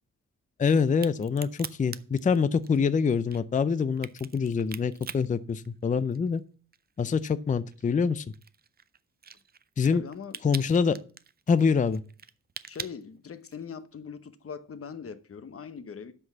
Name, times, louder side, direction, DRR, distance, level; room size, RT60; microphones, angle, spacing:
voice 1, 0.6-6.4 7.0-8.2 9.8-10.0 10.4-11.0 11.5-12.0, left 5 dB, 25° left, 0.4 m, -25 dB
Crack, 0.9-6.4 6.7-13.7, right 6 dB, 30° right, 0.4 m, -44 dB
voice 2, 9.9-10.4 12.7-16.1, left 6 dB, 45° left, 0.9 m, -41 dB
7.8 x 6.1 x 7.1 m
wide cardioid pair, 130°, 32 cm